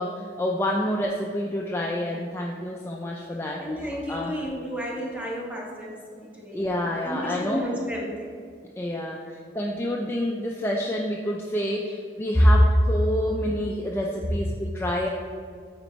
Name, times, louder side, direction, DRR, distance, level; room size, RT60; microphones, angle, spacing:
voice 1, 0.0-4.4 6.5-7.7 8.8-15.1, left 1 dB, 15° left, -1 dB, 0.3 m, -29 dB
voice 2, 3.6-6.0 6.4-6.6 7.0-8.3 12.3-12.4 13.2-13.3, equal, 10° right, -2 dB, 0.9 m, -30 dB
9.1 x 4.4 x 3.0 m, 2.2 s
head